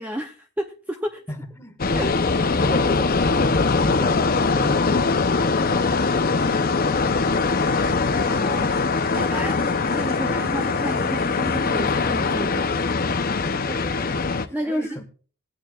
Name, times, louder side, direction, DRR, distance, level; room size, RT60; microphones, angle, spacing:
voice 1, 0.0-1.2 1.9-2.1 8.1-8.7 9.1-12.8 14.5-15.0, equal, 10° right, 4 dB, 0.6 m, -31 dB
voice 2, 1.3-2.2 2.5-7.5 13.7-14.1 14.4-15.0, equal, 10° left, 5 dB, 1.4 m, -35 dB
sound 1, 1.8-14.5, left 4 dB, 40° left, 0.7 m, -22 dB
sound 2, 7.0-12.0, right 2 dB, 65° right, 5.6 m, -45 dB
20.0 x 9.1 x 2.4 m, 0.40 s
head